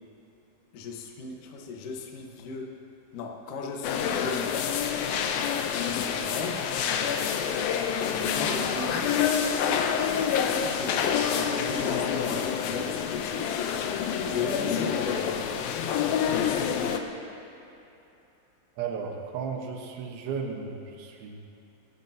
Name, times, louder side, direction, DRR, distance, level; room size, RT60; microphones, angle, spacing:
voice 1, 0.7-2.7 3.1-4.5 5.8-6.7 8.2-9.1 10.4-13.5 14.2-15.4, left 4 dB, 60° left, 0 dB, 2.4 m, -36 dB
sound 1, 3.8-17.0, left 7 dB, 85° left, 2.1 m, -27 dB
voice 2, 18.8-21.4, right 6 dB, 85° right, 1 dB, 3.7 m, -34 dB
27.5 x 15.0 x 2.9 m, 2.8 s
omnidirectional pair, 5.3 m